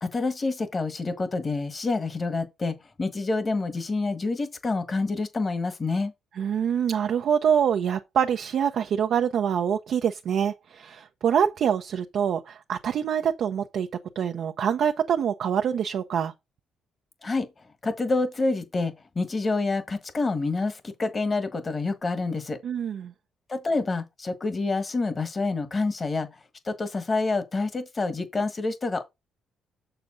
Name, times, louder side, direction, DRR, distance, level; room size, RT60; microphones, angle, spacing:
voice 1, 0.0-6.1 17.2-17.5 17.8-22.6 23.5-26.3 26.7-29.0, left 3 dB, 30° left, 1.4 m, -27 dB
voice 2, 6.3-13.9 14.2-16.3 22.6-23.1, right 8 dB, 65° right, 0.6 m, -25 dB
6.9 x 6.8 x 3.7 m
cardioid pair, 90°, 0 cm